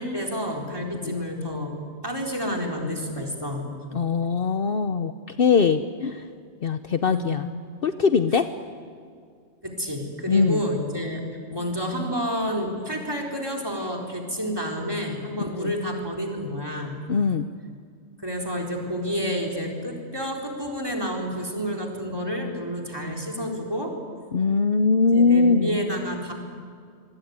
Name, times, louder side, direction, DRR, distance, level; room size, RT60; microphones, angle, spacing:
voice 1, 0.0-1.8 2.0-3.7 7.1-7.2 9.6-11.2 11.5-17.0 18.2-23.9 25.1-26.3, equal, 20° right, 0 dB, 4.1 m, -29 dB
voice 2, 3.9-6.3 6.6-7.5 7.8-8.5 10.3-10.6 15.5-15.7 17.1-17.5 24.3-25.8, left 5 dB, 55° left, 10 dB, 1.0 m, -21 dB
25.5 x 22.0 x 9.6 m, 2.2 s
omnidirectional pair, 1.2 m